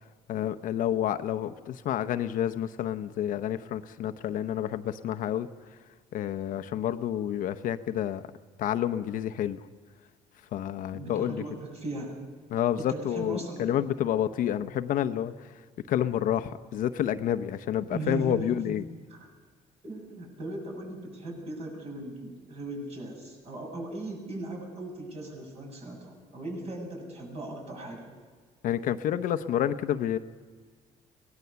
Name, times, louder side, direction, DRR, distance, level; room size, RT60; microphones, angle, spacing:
voice 1, 0.3-5.5 6.1-8.2 8.6-9.7 10.5-11.4 12.5-15.5 15.9-18.8 28.6-30.2, left 10 dB, 70° left, 10 dB, 0.8 m, -29 dB
voice 2, 10.9-12.2 12.8-13.7 17.9-18.6 19.1-19.3 19.8-28.1, right 2 dB, 45° right, 1 dB, 7.5 m, -38 dB
22.5 x 18.0 x 7.0 m, 1.5 s
cardioid pair, 110°, 15 cm